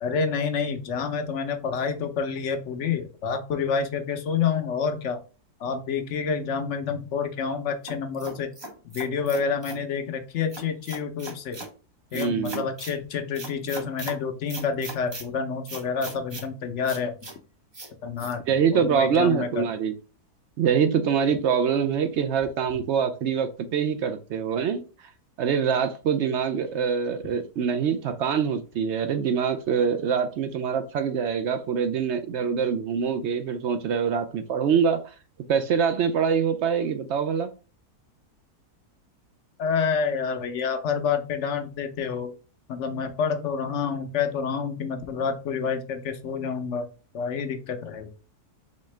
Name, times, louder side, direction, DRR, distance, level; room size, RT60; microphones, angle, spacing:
voice 1, 0.0-5.2 5.6-8.5 8.8-11.6 12.1-17.1 18.0-18.4 18.7-19.7 39.6-42.3 42.7-46.9 47.1-48.1, left 6 dB, 60° left, 0.8 m, -28 dB
sound 1, 7.9-9.8 10.5-11.7 12.1-13.0 13.3-14.2 14.5-15.2 15.7-16.5 16.8-17.3 17.7-17.9 18.2-18.3, right 2 dB, 30° right, 0.4 m, -39 dB
voice 2, 12.1-12.7 18.5-19.9 20.6-24.8 25.4-35.1 35.5-37.5, right 7 dB, 70° right, 0.6 m, -24 dB
4.3 x 3.6 x 3.2 m
omnidirectional pair, 1.6 m